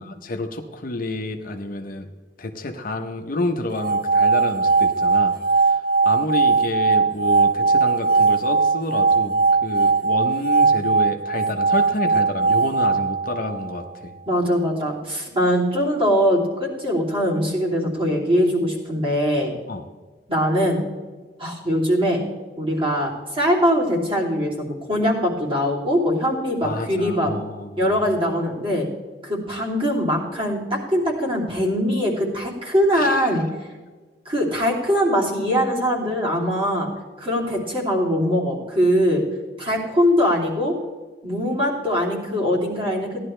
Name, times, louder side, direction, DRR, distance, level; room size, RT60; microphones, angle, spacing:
voice 1, 0.0-2.1 2.4-14.1 19.7-19.8 26.6-28.0 32.9-33.4, left 2 dB, 55° left, 5 dB, 0.9 m, -29 dB
sound 1, 3.7-13.9, right 4 dB, 60° right, 0.5 m, -19 dB
voice 2, 14.3-19.5 20.3-20.8 21.4-22.2 22.6-27.3 27.8-28.9 29.2-33.4 34.2-36.9 37.2-39.2 39.6-40.7 41.2-43.2, equal, 30° right, -3 dB, 3.0 m, -22 dB
16.0 x 11.0 x 3.3 m, 1.3 s
head